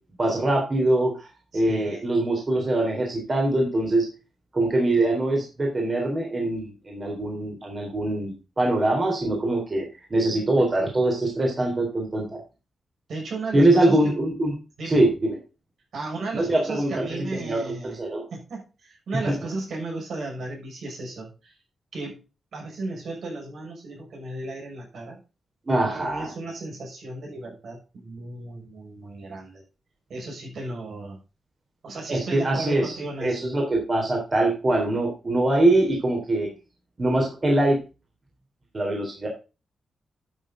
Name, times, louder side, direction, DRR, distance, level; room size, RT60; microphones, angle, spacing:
voice 1, 0.2-1.3 1.5-4.1 4.5-9.8 10.1-12.4 13.5-14.5 14.9-15.4 16.3-17.0 17.4-18.2 19.3-19.4 25.7-26.3 32.1-36.5 37.0-37.8 38.7-39.3, right 1 dB, 30° right, 0 dB, 3.6 m, -23 dB
voice 2, 1.5-2.0 13.1-14.1 14.8-15.0 15.9-18.0 18.3-21.6 21.9-22.2 22.5-25.2 25.8-29.6 30.1-31.2 31.8-33.5, right 2 dB, 70° right, 0 dB, 6.8 m, -35 dB
12.0 x 7.1 x 3.8 m, 0.31 s
wide cardioid pair, 130°, 0 cm